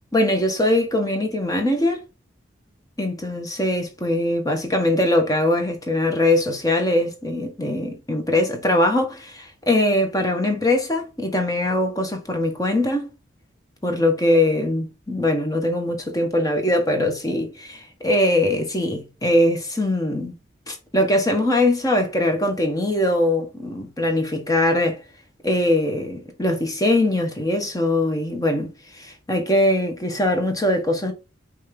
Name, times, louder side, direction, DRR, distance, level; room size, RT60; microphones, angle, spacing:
voice 1, 0.1-2.0 3.0-13.1 13.8-20.3 20.7-25.0 25.4-31.1, left 1 dB, 20° left, 1.2 m, -21 dB
5.4 x 3.4 x 5.2 m
head